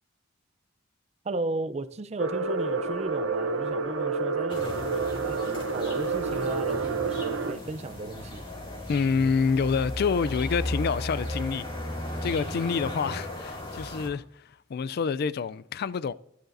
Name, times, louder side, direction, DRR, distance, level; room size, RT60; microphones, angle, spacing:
voice 1, 1.2-8.4, right 2 dB, 35° right, 0.5 m, -35 dB
sound 1, 2.2-7.5, right 4 dB, 85° right, 0.9 m, -29 dB
sound 2, 4.5-14.1, left 1 dB, 25° left, 2.3 m, -36 dB
voice 2, 8.9-11.7 12.2-14.2 14.7-16.1, left 5 dB, 50° left, 0.3 m, -27 dB
15.5 x 10.5 x 2.6 m
head